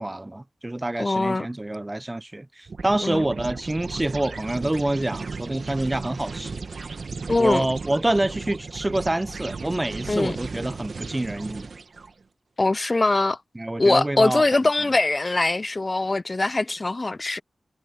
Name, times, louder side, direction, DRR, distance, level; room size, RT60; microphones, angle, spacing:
voice 1, 0.0-6.6 7.4-11.7 13.6-14.4, right 1 dB, 20° right, 0.5 m, -27 dB
voice 2, 1.0-1.5 3.0-3.3 7.3-7.6 10.1-10.4 12.6-13.4 13.8-17.4, left 2 dB, 40° left, 0.3 m, -22 dB
sound 1, 2.7-12.1, right 4 dB, 75° right, 1.5 m, -35 dB
wide cardioid pair, 65°, 0 cm